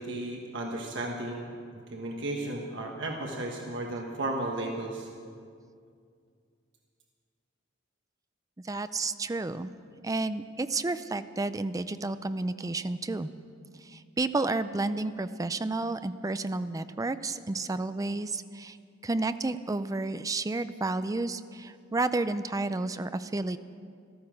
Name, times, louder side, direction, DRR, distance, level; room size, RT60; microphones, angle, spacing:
voice 1, 0.0-1.5 1.7-5.1, right 2 dB, 65° right, 1 dB, 1.4 m, -34 dB
voice 2, 8.7-9.7 10.0-13.3 13.8-18.8 19.0-23.6, right 2 dB, 15° right, 12 dB, 0.4 m, -31 dB
14.0 x 13.5 x 6.3 m, 2.3 s
head